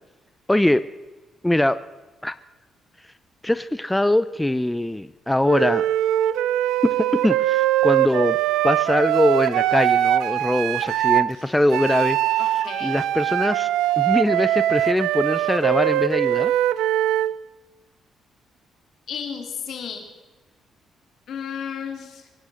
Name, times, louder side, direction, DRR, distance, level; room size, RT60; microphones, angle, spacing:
voice 1, 0.5-0.9 1.4-1.8 2.2-2.4 3.4-5.8 6.8-8.4 8.6-12.4 12.8-13.7 14.0-16.5, left 1 dB, 5° left, 14 dB, 0.5 m, -22 dB
Wind instrument woodwind instrument, 5.5-11.3 11.7-17.3, right 13 dB, 90° right, 0.5 m, -21 dB
voice 2, 12.4-13.0 19.1-20.1 21.3-22.3, left 7 dB, 70° left, 4 dB, 3.1 m, -33 dB
23.5 x 9.6 x 6.3 m, 1.2 s
cardioid pair, 90°, 0 cm